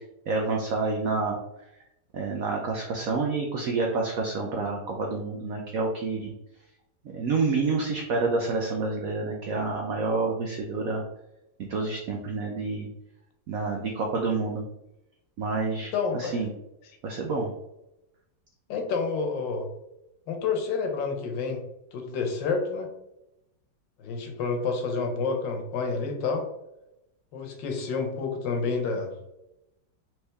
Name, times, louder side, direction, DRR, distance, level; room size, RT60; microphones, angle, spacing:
voice 1, 0.3-1.4 2.1-6.3 7.1-11.0 11.7-12.9 13.5-14.6 15.4-16.5 17.0-17.5, right 3 dB, 70° right, 1 dB, 0.8 m, -28 dB
voice 2, 15.9-16.4 18.7-19.7 20.3-21.6 21.9-22.9 24.0-26.4 27.3-29.1, left 4 dB, 75° left, 4 dB, 1.5 m, -29 dB
4.4 x 3.3 x 3.3 m, 0.88 s
omnidirectional pair, 2.1 m